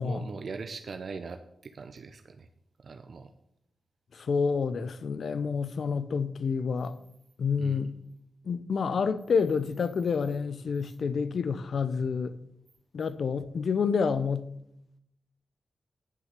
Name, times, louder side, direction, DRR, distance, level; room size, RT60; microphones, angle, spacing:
voice 1, 0.0-2.5 2.8-3.3 7.6-7.9, right 4 dB, 60° right, 0.7 m, -41 dB
voice 2, 4.1-7.0 7.4-7.9 8.4-12.4 12.9-14.5, left 5 dB, 70° left, 0.7 m, -28 dB
10.5 x 6.7 x 6.7 m
cardioid pair, 80°, 0 cm